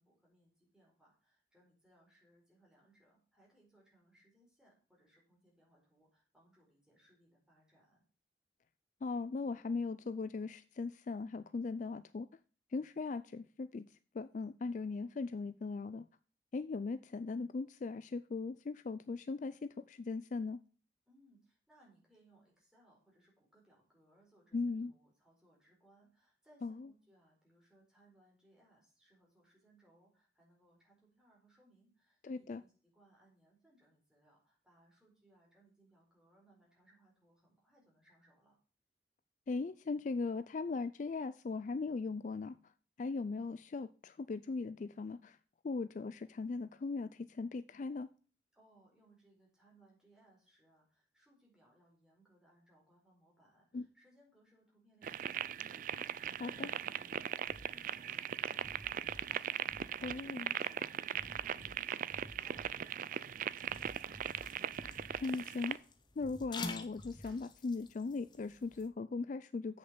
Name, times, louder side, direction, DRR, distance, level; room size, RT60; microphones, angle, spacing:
voice 1, 0.0-8.0 21.1-38.6 48.5-64.3, right 1 dB, 5° right, 4.5 m, -68 dB
voice 2, 9.0-12.3 12.7-13.9 14.1-16.1 16.5-20.6 24.5-24.9 26.6-26.7 32.2-32.6 39.5-42.6 43.0-45.4 45.6-48.1 53.7-53.9 56.4-56.7 60.0-60.5 65.2-65.8 66.2-69.8, left 4 dB, 45° left, 0.3 m, -39 dB
sound 1, 55.0-65.8, right 9 dB, 45° right, 0.3 m, -39 dB
sound 2, 57.5-57.7 58.1-58.3 58.6-60.2 60.6-60.8 61.1-62.7 63.1-63.3 63.6-65.3 65.7-65.8 66.2-67.4, equal, 70° right, 2.6 m, -55 dB
sound 3, 63.3-68.9, left 3 dB, 25° left, 0.9 m, -49 dB
8.0 x 6.5 x 6.9 m
head